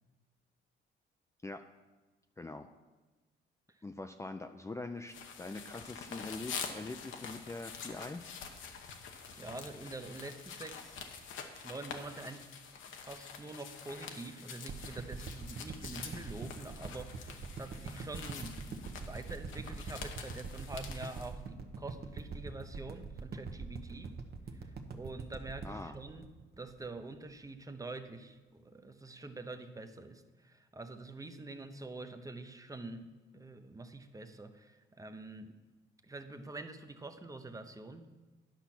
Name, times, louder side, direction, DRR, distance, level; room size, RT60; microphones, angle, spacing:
voice 1, 2.4-2.7 3.8-8.2 25.6-25.9, left 2 dB, 15° left, 6 dB, 0.4 m, -43 dB
sound 1, 5.1-21.3, left 6 dB, 80° left, 1.1 m, -46 dB
voice 2, 9.3-12.5 12.7-24.2 24.5-26.3 26.6-35.6 36.0-38.1, right 2 dB, 15° right, 8 dB, 0.8 m, -46 dB
sound 2, 14.7-27.0 27.4-27.5, right 4 dB, 50° right, 1.0 m, -43 dB
10.5 x 5.7 x 6.0 m, 1.2 s
cardioid pair, 90°, 20 cm